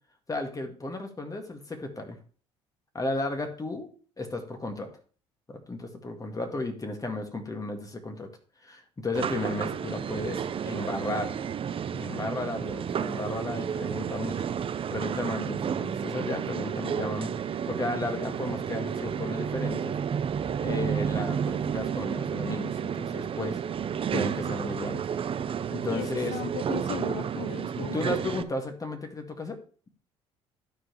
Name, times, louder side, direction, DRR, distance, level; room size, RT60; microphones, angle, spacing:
voice 1, 0.3-2.2 2.9-4.9 5.5-8.3 8.6-11.3 11.9-14.5 14.9-19.9 20.6-23.6 24.1-25.0 25.7-26.4 27.8-29.6, left 2 dB, 25° left, 5 dB, 2.0 m, -34 dB
sound 1, 9.1-28.4, right 8 dB, 40° right, 0.6 m, -31 dB
voice 2, 25.9-28.0, left 9 dB, 70° left, 10 dB, 1.0 m, -37 dB
12.5 x 4.9 x 3.1 m, 0.41 s
hypercardioid pair, 60°, 14 cm